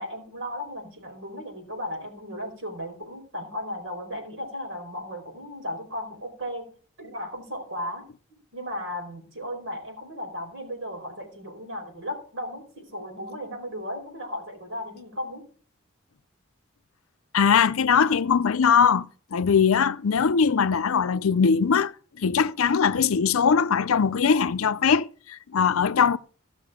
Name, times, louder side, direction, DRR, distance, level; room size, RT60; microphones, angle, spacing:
voice 1, 0.0-6.7 7.0-8.0 8.3-15.4, left 1 dB, 65° right, 4.9 m, -35 dB
voice 2, 17.3-21.9 22.2-26.2, left 6 dB, 85° left, 0.5 m, -21 dB
16.0 x 6.3 x 5.0 m
head